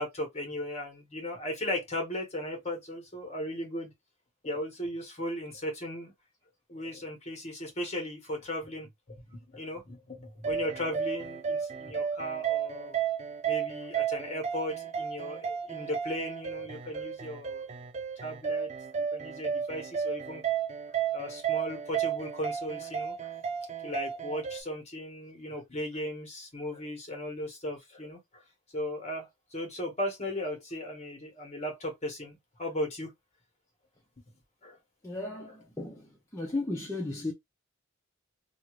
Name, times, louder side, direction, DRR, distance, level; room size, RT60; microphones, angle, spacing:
voice 1, 0.0-3.9 4.4-6.1 6.7-13.0 13.4-17.7 18.2-18.7 18.9-20.4 21.1-23.3 23.8-28.4 28.7-33.1 34.6-34.8, left 1 dB, 35° left, 1.2 m, -37 dB
sound 1, 10.4-24.6, right 7 dB, 35° right, 0.4 m, -33 dB
voice 2, 35.0-37.3, left 2 dB, 15° left, 0.6 m, -35 dB
2.6 x 2.5 x 3.0 m
head